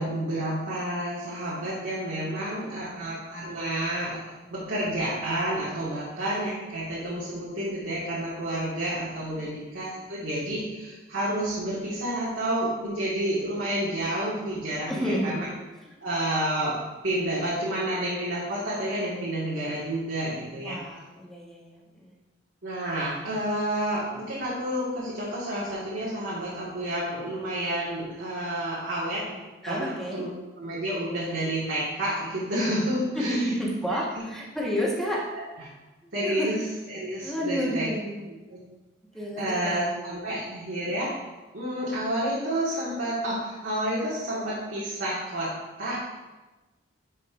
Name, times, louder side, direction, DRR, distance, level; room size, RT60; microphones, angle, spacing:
voice 1, 0.0-15.5 16.0-16.8 17.0-20.8 22.6-29.2 29.7-33.5 33.9-34.0 35.3-35.7 36.1-36.6 36.9-37.9 38.5-38.6 39.4-41.1 41.5-45.5 45.8-46.1, right 1 dB, 75° right, -8 dB, 1.7 m, -30 dB
voice 2, 2.5-3.1 14.9-15.4 20.6-22.2 29.6-30.2 33.1-35.2 36.0-36.5 37.2-38.3 39.1-39.8, equal, ahead, -4 dB, 1.3 m, -31 dB
10.0 x 5.3 x 2.5 m, 1.1 s
head